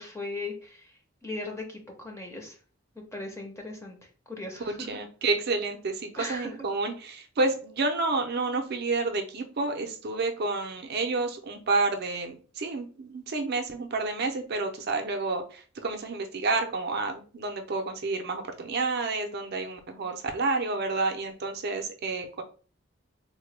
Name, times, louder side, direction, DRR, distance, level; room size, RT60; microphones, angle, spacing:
voice 1, 0.0-2.6 2.9-4.0 4.3-4.9 6.2-6.6, left 2 dB, 15° left, 2 dB, 0.6 m, -38 dB
voice 2, 4.6-22.4, right 3 dB, 50° right, 5 dB, 0.5 m, -30 dB
3.6 x 2.1 x 3.2 m, 0.38 s
head